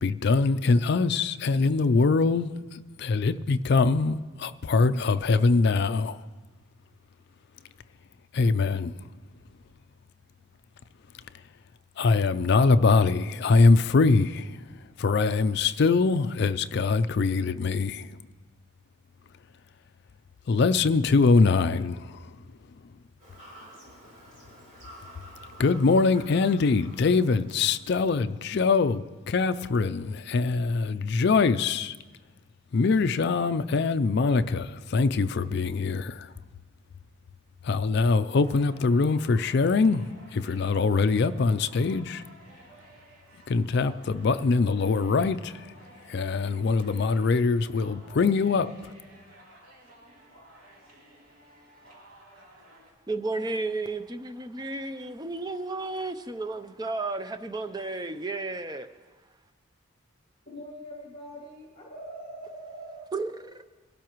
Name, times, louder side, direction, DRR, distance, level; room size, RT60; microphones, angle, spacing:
voice 1, 0.0-6.2 8.3-8.9 12.0-18.2 20.5-22.3 25.6-31.9 32.7-36.3 37.6-42.2 43.5-45.7 46.1-48.9, left 4 dB, 50° left, 0.4 m, -23 dB
Fowl / Bird vocalization bird call bird song, 23.2-28.2, equal, 40° right, 4.8 m, -50 dB
sound 1, 38.4-52.9, right 1 dB, 80° right, 3.3 m, -54 dB
voice 2, 53.1-58.9 63.1-63.6, right 3 dB, 20° right, 0.5 m, -33 dB
voice 3, 60.4-63.1, right 1 dB, 30° left, 2.5 m, -42 dB
22.5 x 12.0 x 3.0 m
head